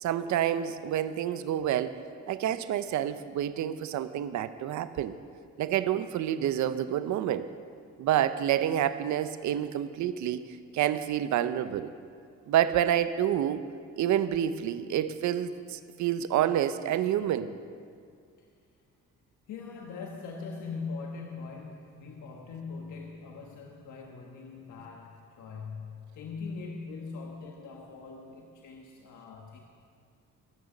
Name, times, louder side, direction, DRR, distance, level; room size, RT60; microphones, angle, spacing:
voice 1, 0.0-2.0 2.3-5.2 5.6-7.5 8.0-10.4 10.7-11.9 12.5-13.6 14.0-17.5, right 11 dB, 70° right, 13 dB, 0.7 m, -28 dB
voice 2, 19.5-29.6, left 4 dB, 75° left, 0 dB, 1.3 m, -41 dB
18.0 x 6.5 x 7.1 m, 2.3 s
cardioid pair, 90°, 30 cm